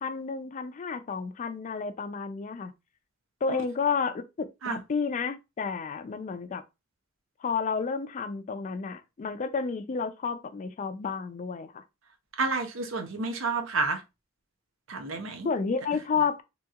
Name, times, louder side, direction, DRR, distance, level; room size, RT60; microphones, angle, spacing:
voice 1, 0.0-2.7 3.4-6.6 7.4-11.8 15.4-16.4, left 5 dB, 40° left, 0.4 m, -31 dB
voice 2, 12.4-14.0 14.9-15.5, right 3 dB, 80° right, 0.7 m, -30 dB
2.8 x 2.7 x 2.3 m
head